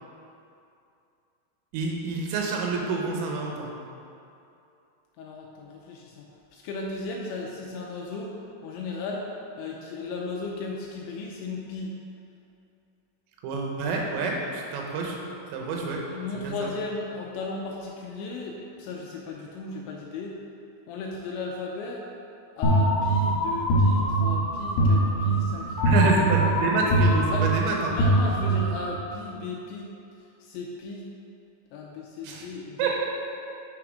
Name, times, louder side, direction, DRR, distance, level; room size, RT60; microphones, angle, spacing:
voice 1, 1.7-3.7 13.4-15.2 15.5-16.0 16.4-16.7 25.8-28.0 32.2-32.5 32.8-33.1, right 4 dB, 85° right, 0 dB, 3.6 m, -27 dB
voice 2, 5.2-6.3 6.5-9.3 9.6-11.9 16.1-20.3 20.9-22.0 22.6-26.1 26.4-26.5 27.3-27.6 27.9-29.9 30.4-31.1 31.7-33.1, left 3 dB, 85° left, -1 dB, 2.6 m, -36 dB
sound 1, 22.6-29.0, right 1 dB, 65° left, 2.9 m, -23 dB
9.5 x 4.6 x 4.9 m, 2.6 s
omnidirectional pair, 5.8 m